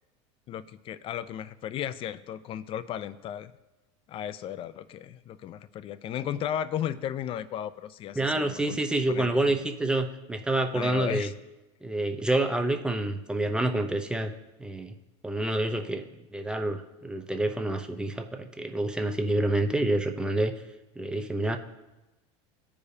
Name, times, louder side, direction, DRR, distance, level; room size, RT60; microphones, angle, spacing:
voice 1, 0.5-3.5 4.1-8.8 9.1-9.6 10.7-11.3, left 10 dB, 35° left, 14 dB, 0.4 m, -35 dB
voice 2, 8.2-11.3 11.8-14.3 14.6-14.9 15.2-20.5 21.0-21.6, right 2 dB, 5° right, 5 dB, 0.6 m, -28 dB
14.5 x 4.9 x 2.7 m, 1.0 s
supercardioid pair, 120°, 15 cm